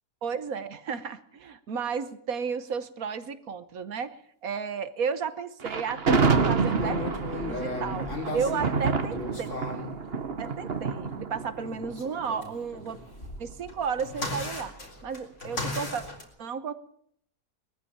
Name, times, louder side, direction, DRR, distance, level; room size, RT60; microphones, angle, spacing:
voice 1, 0.2-4.1 4.4-7.0 7.4-9.5 10.4-13.0 13.4-14.7 15.0-16.0 16.4-16.7, right 6 dB, 60° right, 13 dB, 1.5 m, -33 dB
Thunder, 5.6-12.8, right 4 dB, 40° right, 1.4 m, -28 dB
sound 1, 6.8-9.9 11.6-16.2, left 2 dB, 45° left, 4.2 m, -36 dB
21.5 x 14.5 x 8.7 m, 0.66 s
omnidirectional pair, 1.7 m